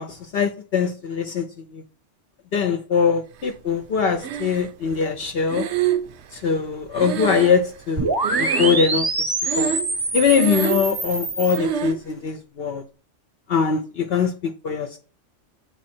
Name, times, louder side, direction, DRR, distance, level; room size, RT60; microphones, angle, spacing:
voice 1, 0.0-1.8 2.5-5.6 6.3-9.1 9.6-9.7 10.1-12.8 13.5-15.0, left 6 dB, 60° left, 0.8 m, -22 dB
Breathing, 4.2-4.9 5.5-8.0 8.2-9.0 9.4-10.0 10.3-11.0 11.5-12.0, right 8 dB, 70° right, 0.9 m, -26 dB
sound 1, 8.0-11.6, right 2 dB, 20° right, 0.7 m, -25 dB
7.3 x 3.5 x 4.3 m
omnidirectional pair, 1.3 m